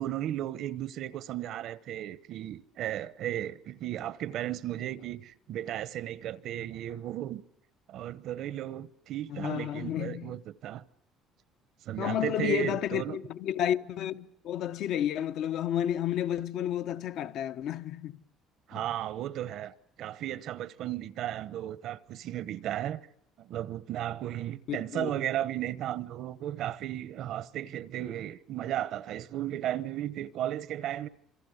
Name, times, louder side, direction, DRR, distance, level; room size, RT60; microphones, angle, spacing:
voice 1, 0.0-7.4 7.9-10.8 11.8-13.2 18.7-23.0 23.4-31.1, right 12 dB, 60° right, 1.0 m, -35 dB
voice 2, 9.3-10.3 12.0-18.1 24.7-25.1, left 11 dB, 60° left, 1.0 m, -31 dB
28.0 x 22.5 x 8.1 m
cardioid pair, 145°, 0 cm